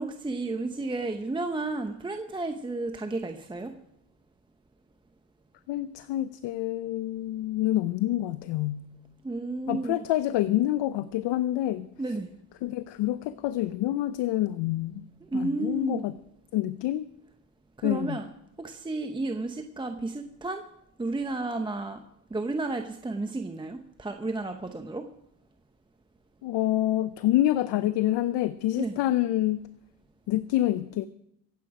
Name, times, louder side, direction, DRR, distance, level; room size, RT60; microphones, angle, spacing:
voice 1, 0.0-3.7 9.2-10.0 12.0-12.3 15.3-16.0 17.8-18.3 18.6-20.6 21.0-22.0 22.3-25.1 28.8-28.9, right 2 dB, 10° right, 6 dB, 0.9 m, -32 dB
voice 2, 5.7-8.8 9.7-11.9 12.6-15.1 15.3-16.1 16.5-17.1 17.8-18.2 26.4-29.6 30.3-31.1, left 14 dB, 65° left, 14 dB, 0.8 m, -27 dB
25.0 x 8.4 x 4.9 m, 0.76 s
cardioid pair, 115°, 46 cm